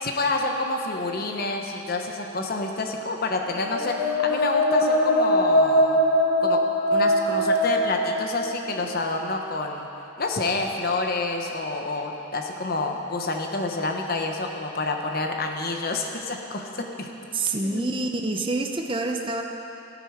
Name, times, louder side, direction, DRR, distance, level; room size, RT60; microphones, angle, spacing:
voice 1, 0.0-6.0 6.4-6.6 6.9-9.9 10.2-17.1 17.7-17.9, left 3 dB, 45° left, 3 dB, 1.0 m, -28 dB
sound 1, 3.3-9.1, left 1 dB, 85° left, 1.7 m, -22 dB
voice 2, 17.3-19.4, right 2 dB, 25° right, 3 dB, 0.7 m, -27 dB
17.0 x 8.8 x 5.1 m, 3.0 s
head